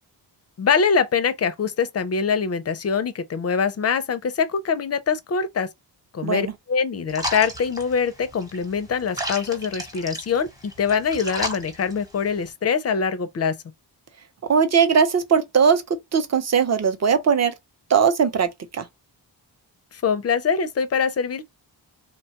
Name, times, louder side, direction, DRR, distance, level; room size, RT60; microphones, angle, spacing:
voice 1, 0.6-5.7 6.1-10.5 10.8-13.5 19.9-21.5, left 6 dB, 35° left, 0.4 m, -23 dB
voice 2, 6.2-6.5 14.5-17.5 17.9-18.9, right 6 dB, 35° right, 0.6 m, -20 dB
sound 1, 7.1-12.5, equal, 10° right, 0.8 m, -34 dB
3.1 x 2.2 x 2.8 m
wide cardioid pair, 115°, 45 cm